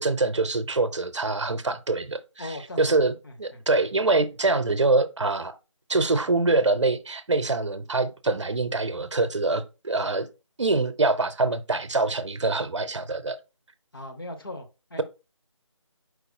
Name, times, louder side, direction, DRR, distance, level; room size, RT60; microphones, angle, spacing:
voice 1, 0.0-3.1 3.4-5.6 5.9-10.3 10.6-13.4, right 3 dB, 65° right, 0.6 m, -24 dB
voice 2, 2.4-3.6 13.9-15.0, left 1 dB, 45° left, 0.8 m, -39 dB
4.8 x 4.0 x 2.7 m
figure-of-eight pair, 160°, 17 cm